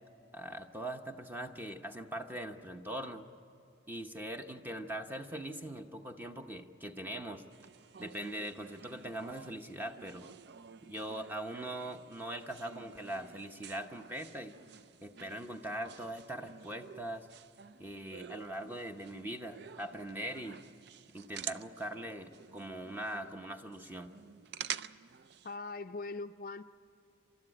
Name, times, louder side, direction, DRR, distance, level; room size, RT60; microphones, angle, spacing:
voice 1, 0.3-3.2 3.9-7.4 8.0-10.3 10.8-14.6 15.0-17.3 17.8-20.6 21.1-24.1, right 1 dB, 10° right, 5 dB, 0.9 m, -41 dB
sound 1, 7.5-25.6, right 8 dB, 55° right, 0.4 m, -49 dB
voice 2, 25.4-26.6, left 3 dB, 45° left, 9 dB, 0.4 m, -41 dB
28.5 x 13.0 x 10.0 m, 2.6 s
head